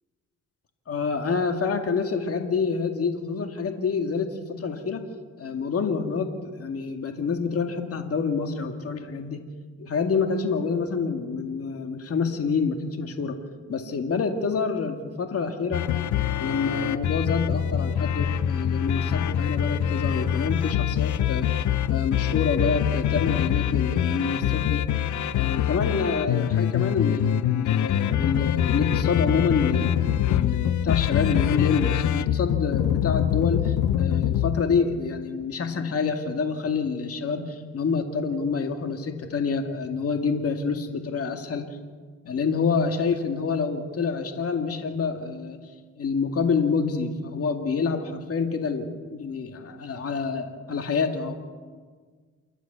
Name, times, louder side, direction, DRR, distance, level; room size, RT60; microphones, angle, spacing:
voice 1, 0.9-5.0 5.4-9.4 9.8-13.4 13.7-15.9 16.4-21.5 21.9-24.8 25.3-41.7 42.3-45.6 46.0-51.3, left 5 dB, 50° left, 5 dB, 2.2 m, -27 dB
sound 1, 15.7-34.6, left 10 dB, 75° left, 1.0 m, -24 dB
28.5 x 12.0 x 8.1 m, 1.5 s
cardioid pair, 90°, 30 cm